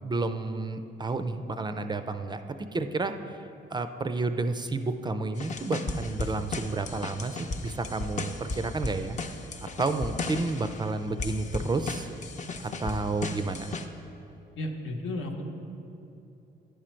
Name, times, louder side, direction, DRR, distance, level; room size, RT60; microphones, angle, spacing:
voice 1, 0.0-3.4 3.7-9.2 9.8-12.1 12.6-13.7, right 3 dB, 20° right, 9 dB, 0.3 m, -31 dB
sound 1, 5.4-10.9 11.2-13.9, left 3 dB, 35° left, 0.6 m, -36 dB
voice 2, 14.6-15.4, left 1 dB, 85° left, 2 dB, 0.9 m, -33 dB
10.0 x 5.0 x 4.4 m, 2.9 s
cardioid pair, 90°, 20 cm